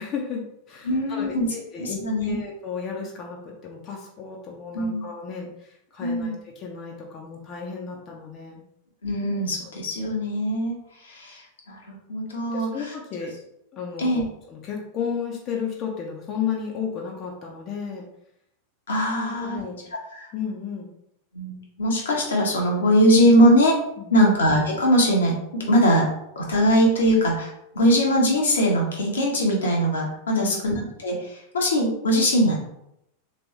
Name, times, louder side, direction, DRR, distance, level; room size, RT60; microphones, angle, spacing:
voice 1, 0.0-8.6 9.3-9.4 12.5-13.3 13.7-18.1 19.1-19.8 20.3-20.9 24.0-24.3 30.3-30.7 32.1-32.3, left 6 dB, 35° left, -1 dB, 0.7 m, -33 dB
voice 2, 0.9-1.5 1.8-2.4 4.7-5.0 6.0-6.3 9.0-10.8 11.1-11.4 11.7-12.7 14.0-14.2 18.9-19.6 20.1-20.3 21.3-23.8 24.1-26.1 26.4-30.8 31.0-31.2 31.5-32.6, equal, 65° left, -1 dB, 1.0 m, -21 dB
3.4 x 3.0 x 3.1 m, 0.78 s
figure-of-eight pair, 90°, 0 cm